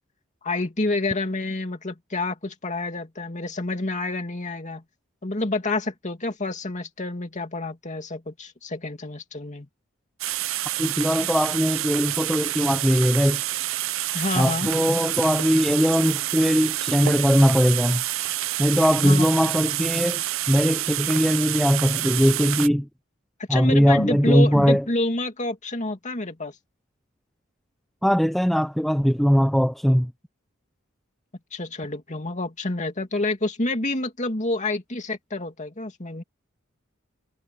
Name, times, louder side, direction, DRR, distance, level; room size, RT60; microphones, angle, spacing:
voice 1, 0.4-4.8 5.2-9.7 14.1-14.7 19.0-19.3 23.5-26.5 31.5-36.2, left 2 dB, 35° left, 2.5 m, -28 dB
sound 1, 10.2-22.7, right 14 dB, 70° right, 0.6 m, -28 dB
voice 2, 10.8-13.4 14.4-18.0 18.6-22.9 23.5-24.9 28.0-30.1, equal, ahead, 0.5 m, -20 dB
head